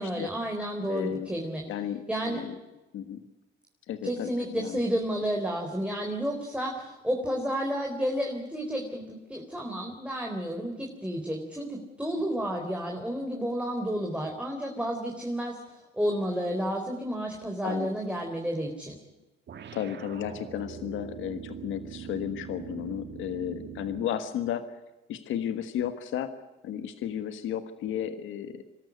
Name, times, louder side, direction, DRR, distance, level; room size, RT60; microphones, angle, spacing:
voice 1, 0.0-1.6 2.1-2.4 4.0-15.6 15.9-19.0, equal, 5° right, 1 dB, 3.9 m, -31 dB
voice 2, 0.9-1.3 1.7-2.5 2.9-3.2 3.9-4.8 17.6-17.9 19.7-24.7 25.1-26.3 26.6-28.7, left 10 dB, 85° left, 10 dB, 1.5 m, -33 dB
sound 1, 19.5-24.2, right 8 dB, 60° right, 1.9 m, -42 dB
25.0 x 13.0 x 9.5 m, 1.1 s
cardioid pair, 90°, 20 cm